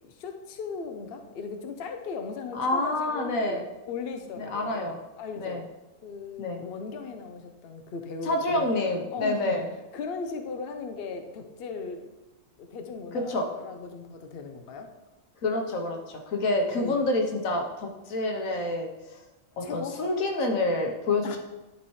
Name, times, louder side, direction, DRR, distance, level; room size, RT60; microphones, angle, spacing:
voice 1, 0.0-3.6 3.9-5.6 6.0-8.7 9.1-9.6 9.9-12.1 12.6-14.9 16.7-17.0 19.6-19.9 21.2-21.4, left 5 dB, 55° left, 5 dB, 0.8 m, -37 dB
voice 2, 2.5-3.6 4.4-5.0 5.4-5.6 6.4-6.6 8.2-9.7 13.3-13.4 15.4-19.2 19.6-21.4, left 2 dB, 85° left, 1 dB, 1.4 m, -28 dB
11.0 x 4.2 x 3.1 m, 1.0 s
omnidirectional pair, 1.4 m